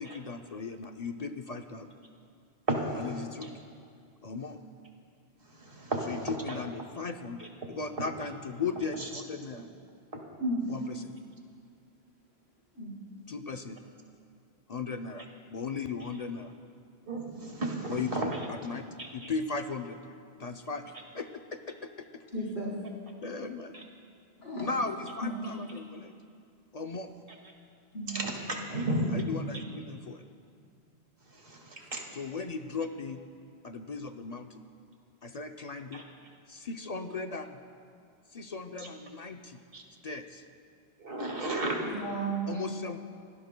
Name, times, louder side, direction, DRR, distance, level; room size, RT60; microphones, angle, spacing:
voice 1, 0.0-1.9 3.0-3.5 4.2-4.6 6.1-9.7 10.7-11.1 13.3-13.8 14.7-16.5 17.9-18.8 19.1-20.1 20.4-22.2 23.2-23.8 24.6-26.1 26.7-27.1 28.7-28.8 29.1-30.2 32.1-33.2 33.6-34.6 35.2-36.0 36.5-37.6 38.3-39.6 40.0-40.4 42.5-43.0, left 4 dB, 45° left, 6 dB, 0.6 m, -37 dB
voice 2, 2.7-3.5 5.4-6.6 9.0-9.1 9.5-9.6 17.1-18.4 19.0-19.3 23.7-23.8 28.1-28.4 28.7-29.1 29.5-29.6 31.3-32.0 35.9-36.0 38.8-38.9 39.7-39.8 41.0-41.8, right 2 dB, 60° right, 1 dB, 2.1 m, -34 dB
voice 3, 22.3-22.7 24.4-24.7 25.2-25.3 27.9-28.2 31.8-31.9 41.8-42.5, right 2 dB, 70° left, -6 dB, 4.3 m, -33 dB
30.0 x 17.0 x 2.2 m, 2.4 s
omnidirectional pair, 1.1 m